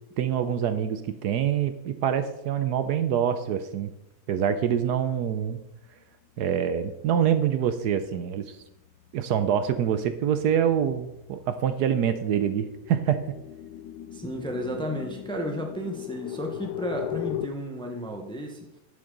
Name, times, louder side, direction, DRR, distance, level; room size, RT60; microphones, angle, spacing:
voice 1, 0.2-3.9 4.3-5.6 6.4-8.6 9.1-13.2, right 9 dB, 70° right, 10 dB, 1.0 m, -25 dB
sound 1, 8.0-8.1 8.5-17.5, left 12 dB, 70° left, 1.0 m, -39 dB
voice 2, 14.1-18.7, equal, 5° left, 2 dB, 0.8 m, -33 dB
11.0 x 7.2 x 3.9 m, 0.85 s
omnidirectional pair, 2.2 m